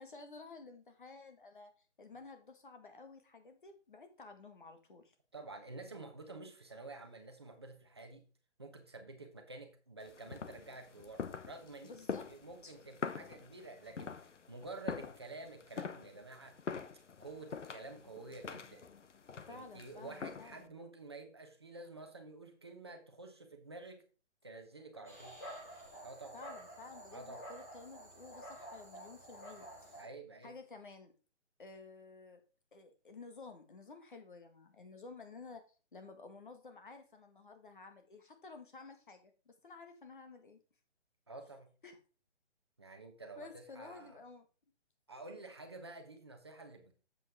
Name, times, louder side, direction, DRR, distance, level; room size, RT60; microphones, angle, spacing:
voice 1, 0.0-1.7 2.0-5.0 11.8-12.3 12.6-12.7 19.5-20.7 26.3-30.0 30.4-31.1 31.6-32.4 32.7-35.6 35.9-40.6 41.8-42.0 43.4-44.5, left 3 dB, 45° left, 6 dB, 1.7 m, -53 dB
voice 2, 5.3-8.3 8.6-12.0 12.3-16.6 17.2-18.8 19.5-24.0 24.4-25.4 26.0-26.4 27.1-27.4 29.9-30.5 41.3-41.7 42.8-44.2 45.1-46.9, right 2 dB, 20° right, 4 dB, 1.0 m, -50 dB
sound 1, 10.0-20.7, left 6 dB, 85° left, 1.1 m, -45 dB
Dog, 25.0-30.0, right 1 dB, 15° left, 1.1 m, -50 dB
8.2 x 7.8 x 3.5 m, 0.35 s
hypercardioid pair, 180°, 35 cm